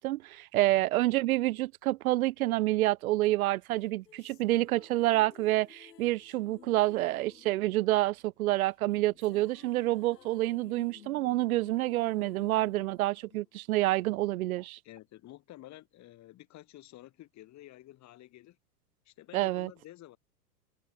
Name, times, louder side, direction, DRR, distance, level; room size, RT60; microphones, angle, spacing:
voice 1, 0.0-14.8 19.3-19.7, right 17 dB, 60° right, 0.6 m, -28 dB
sound 1, 3.7-14.1, left 8 dB, 85° left, 1.6 m, -56 dB
voice 2, 14.8-18.6 19.1-20.2, left 15 dB, 35° left, 4.1 m, -51 dB
hypercardioid pair, 100°, 47 cm